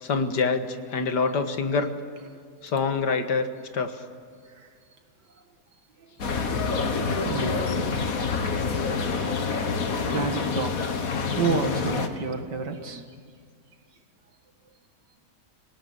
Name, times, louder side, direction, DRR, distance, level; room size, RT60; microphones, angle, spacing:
voice 1, 0.0-1.9 2.6-3.5 3.7-4.0, left 4 dB, 75° left, 8 dB, 2.1 m, -25 dB
voice 2, 6.0-6.8 7.1-7.8 9.7-13.1, right 4 dB, 80° right, 6 dB, 2.4 m, -32 dB
sound 1, 6.2-12.1, left 4 dB, 55° left, 1.9 m, -27 dB
27.0 x 18.0 x 8.8 m, 2.2 s
omnidirectional pair, 1.8 m